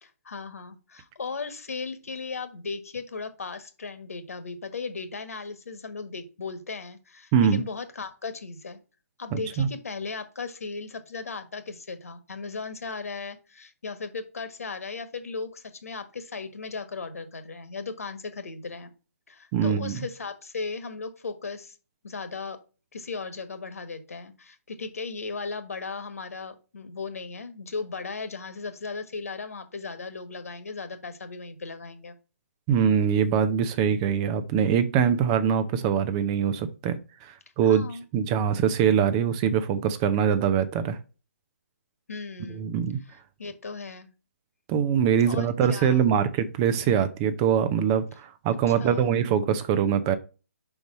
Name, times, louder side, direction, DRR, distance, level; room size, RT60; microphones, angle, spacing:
voice 1, 0.0-8.8 9.2-18.9 19.3-21.8 22.0-22.6 22.9-32.1 37.6-38.0 42.1-42.6 43.4-44.1 45.2-46.0 48.7-49.1, left 4 dB, 65° left, 1.4 m, -36 dB
voice 2, 9.3-9.7 19.5-20.0 32.7-37.8 38.1-41.0 42.5-43.0 44.7-50.2, right 8 dB, 25° right, 0.6 m, -23 dB
5.3 x 4.7 x 5.3 m
figure-of-eight pair, 140°, 9 cm